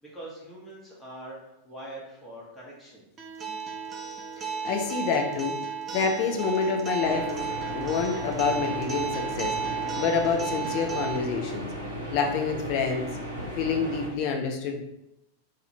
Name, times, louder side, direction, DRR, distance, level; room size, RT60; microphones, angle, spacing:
voice 1, 0.0-3.0, right 1 dB, 10° left, -6 dB, 0.8 m, -43 dB
Acoustic guitar, 3.2-11.2, right 6 dB, 25° right, 0.4 m, -34 dB
voice 2, 4.6-5.5 5.9-7.3 7.8-9.6 10.0-11.7 12.1-13.1 13.5-14.8, left 5 dB, 45° left, 2 dB, 0.4 m, -27 dB
sound 1, 7.0-14.1, equal, 80° right, 0.7 m, -35 dB
2.3 x 2.2 x 2.8 m, 0.85 s
figure-of-eight pair, 90°, 0 cm